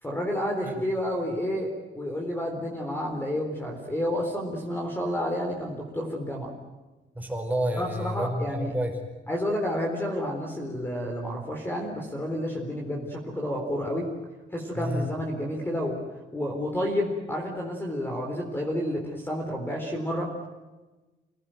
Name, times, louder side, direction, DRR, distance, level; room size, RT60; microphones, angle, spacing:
voice 1, 0.0-6.5 7.7-8.7 9.3-14.1 14.5-16.0 16.3-20.3, equal, 10° left, 1 dB, 4.0 m, -30 dB
voice 2, 7.2-8.9 14.7-15.1, equal, 10° right, 2 dB, 5.2 m, -29 dB
29.0 x 17.5 x 9.2 m, 1.2 s
cardioid pair, 155°, 20 cm